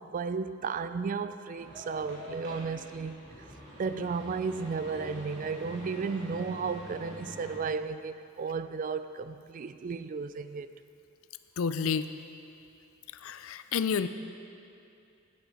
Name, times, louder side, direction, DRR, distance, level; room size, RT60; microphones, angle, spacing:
voice 1, 0.0-3.2 3.8-10.7, right 5 dB, 40° right, 0.3 m, -34 dB
sound 1, 1.5-7.5, left 1 dB, 60° right, 2.6 m, -45 dB
voice 2, 11.6-12.1 13.2-14.1, left 6 dB, 80° left, 0.4 m, -29 dB
10.5 x 9.4 x 4.3 m
head